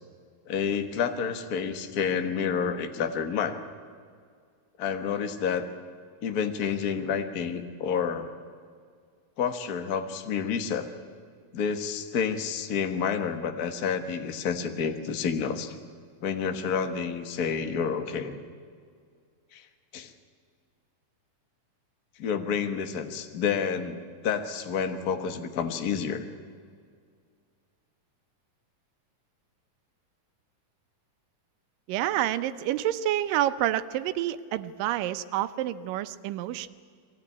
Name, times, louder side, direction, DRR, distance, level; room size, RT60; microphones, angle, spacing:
voice 1, 0.5-3.6 4.8-5.7 6.2-8.3 9.4-10.9 11.5-15.8 16.2-18.4 19.5-19.6 19.9-20.1 22.2-26.2, left 6 dB, 80° left, 8 dB, 0.8 m, -29 dB
voice 2, 31.9-36.7, right 13 dB, 90° right, 13 dB, 2.4 m, -28 dB
22.5 x 17.5 x 9.8 m, 2.1 s
omnidirectional pair, 3.8 m